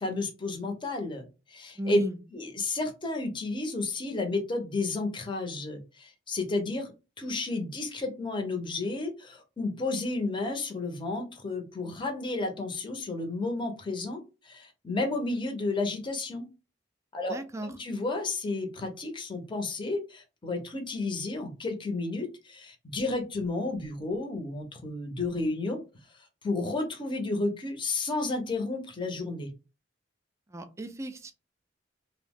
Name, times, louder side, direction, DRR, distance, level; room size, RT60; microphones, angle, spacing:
voice 1, 0.0-2.0 2.3-6.9 7.2-16.5 17.1-17.4 17.8-25.8 26.4-29.5, left 2 dB, 25° left, 4 dB, 0.6 m, -32 dB
voice 2, 1.8-2.2 17.3-17.7 30.5-31.3, right 1 dB, 15° right, 8 dB, 0.3 m, -34 dB
2.7 x 2.0 x 3.4 m, 0.30 s
head